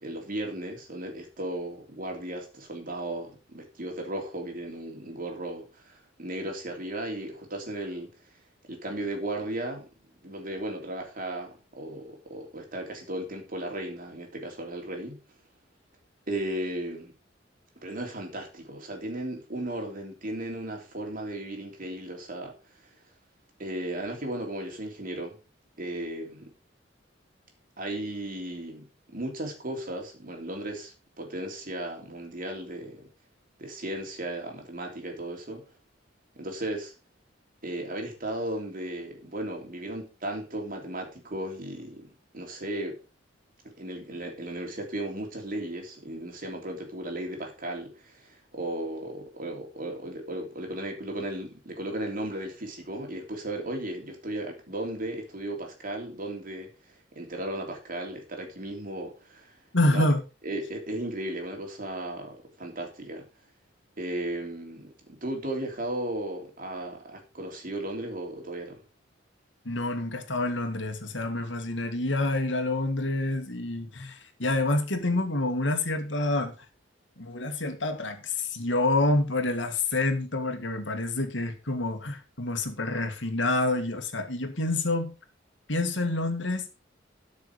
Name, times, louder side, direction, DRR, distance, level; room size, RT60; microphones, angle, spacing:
voice 1, 0.0-8.1 8.7-9.9 10.2-15.2 16.3-17.1 17.8-22.5 22.8-22.9 23.6-25.4 25.8-26.5 27.8-33.1 33.6-35.6 36.3-36.9 37.6-43.0 43.6-56.7 57.1-59.5 59.9-60.1 60.4-63.3 64.0-68.8, right 1 dB, 50° right, 3.3 m, -35 dB
voice 2, 59.7-60.2 69.6-76.5 77.2-85.1 85.7-86.7, left 2 dB, 75° left, 2.2 m, -27 dB
13.0 x 6.4 x 5.0 m
head